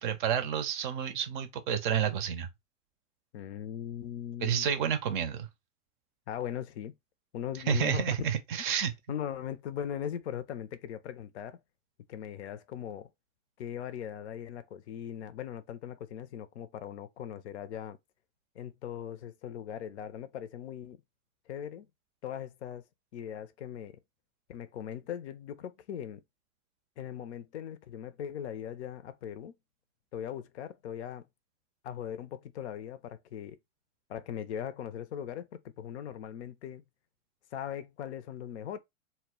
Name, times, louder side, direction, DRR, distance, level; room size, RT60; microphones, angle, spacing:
voice 1, 0.0-2.5 4.4-5.5 7.7-8.9, right 8 dB, 40° right, 0.5 m, -30 dB
voice 2, 3.3-4.7 6.3-6.9 7.3-8.1 9.1-11.6 12.1-13.1 13.6-18.0 18.6-21.0 21.5-21.9 22.2-22.8 23.1-24.0 24.5-26.2 27.0-29.6 30.1-31.3 31.8-33.6 34.1-36.8 37.5-38.8, left 9 dB, 60° left, 0.5 m, -39 dB
2.1 x 2.1 x 3.6 m
hypercardioid pair, 105°, 39 cm